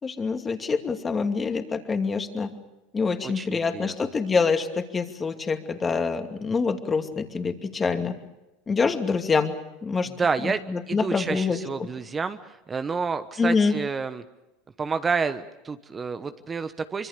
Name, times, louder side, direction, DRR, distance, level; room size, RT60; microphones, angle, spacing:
voice 1, 0.0-2.5 2.9-8.2 8.7-9.5 9.8-10.1 10.4-11.6 13.4-13.8, left 4 dB, 25° left, 6 dB, 2.5 m, -25 dB
voice 2, 3.2-3.9 10.1-10.6 10.9-14.2 14.8-17.1, right 5 dB, 25° right, 10 dB, 1.1 m, -29 dB
25.0 x 24.5 x 6.8 m, 0.99 s
hypercardioid pair, 90°, 0 cm